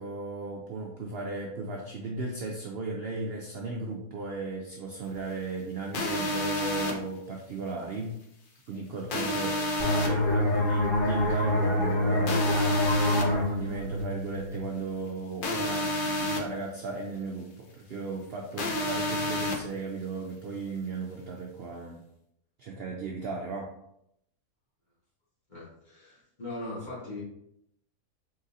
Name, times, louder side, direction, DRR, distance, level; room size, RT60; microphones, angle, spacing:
voice 1, 0.0-8.2 8.7-9.7 10.0-12.6 13.2-22.0 22.6-23.8, right 3 dB, 60° right, 0 dB, 0.6 m, -36 dB
sound 1, 5.9-6.9 9.1-10.1 12.3-13.2 15.4-16.4 18.6-19.6, left 1 dB, 55° left, 0.6 m, -29 dB
sound 2, 9.8-15.2, left 1 dB, 75° left, 1.8 m, -27 dB
voice 2, 25.5-27.2, left 2 dB, 35° left, -7 dB, 1.5 m, -40 dB
3.9 x 3.9 x 2.6 m, 0.78 s
omnidirectional pair, 1.5 m